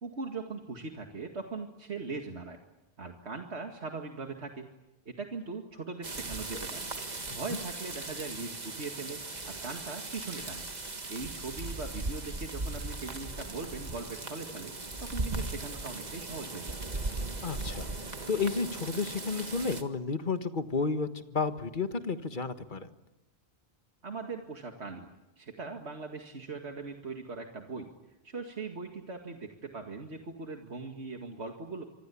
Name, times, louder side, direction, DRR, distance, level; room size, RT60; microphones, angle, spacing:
voice 1, 0.0-2.6 3.0-4.7 5.1-6.9 7.3-10.7 11.1-14.7 15.0-16.9 24.0-25.1 25.4-27.9 28.2-31.8, right 4 dB, 90° right, 3 dB, 2.4 m, -40 dB
sound 1, 6.0-19.8, right 2 dB, 40° right, 1.8 m, -38 dB
voice 2, 17.4-17.9 18.3-22.9, left 4 dB, 50° left, 9 dB, 1.7 m, -32 dB
25.5 x 25.5 x 8.5 m, 0.97 s
omnidirectional pair, 1.1 m